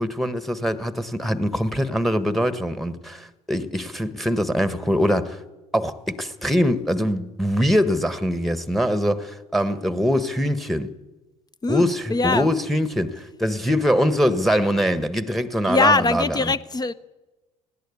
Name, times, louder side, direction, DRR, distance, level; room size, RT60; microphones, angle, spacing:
voice 1, 0.0-5.4 5.7-10.9 11.7-16.5, equal, ahead, 1.4 m, -23 dB
voice 2, 11.6-12.5 15.7-16.9, left 3 dB, 25° left, 0.9 m, -21 dB
19.0 x 17.0 x 8.4 m
figure-of-eight pair, 60°, 16 cm